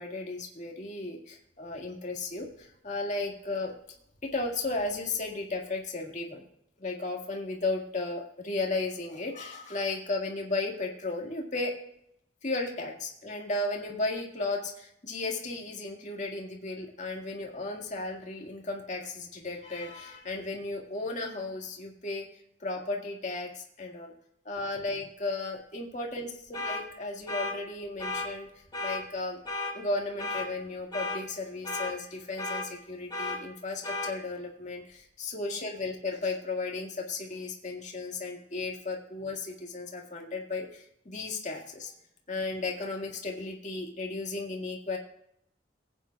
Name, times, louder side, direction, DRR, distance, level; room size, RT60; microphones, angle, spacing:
voice 1, 0.0-3.7 4.2-6.4 6.8-11.7 12.4-22.3 22.6-24.1 24.5-28.5 28.8-29.4 29.7-41.9 42.3-45.0, left 3 dB, 40° left, 0 dB, 2.0 m, -34 dB
sound 1, 26.5-26.8 27.3-27.5 28.0-28.3 28.7-29.0 29.5-29.7 30.2-30.5 30.9-31.2 31.6-31.9 32.4-32.6 33.1-33.4 33.8-34.1, left 2 dB, 25° left, 2.2 m, -33 dB
19.0 x 9.1 x 2.3 m, 0.73 s
head